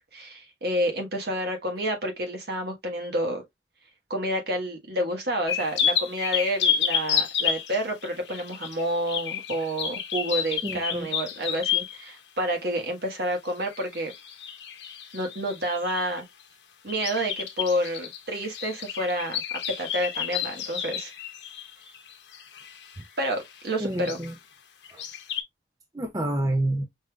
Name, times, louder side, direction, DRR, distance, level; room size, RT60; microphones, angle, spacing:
voice 1, 0.1-3.4 4.1-14.1 15.1-16.2 16.8-19.4 19.7-21.1 23.2-24.2, equal, 60° right, 1.5 m, -29 dB
Suburban Forest Birds, 5.5-12.0 13.6-16.2 16.9-23.0 23.4-23.6 23.9-24.3 24.8-25.4, left 8 dB, 75° left, 1.0 m, -30 dB
voice 2, 10.6-11.1 23.8-24.3 24.9-25.0 25.9-26.9, right 1 dB, 20° right, 0.5 m, -28 dB
5.2 x 3.6 x 2.4 m
head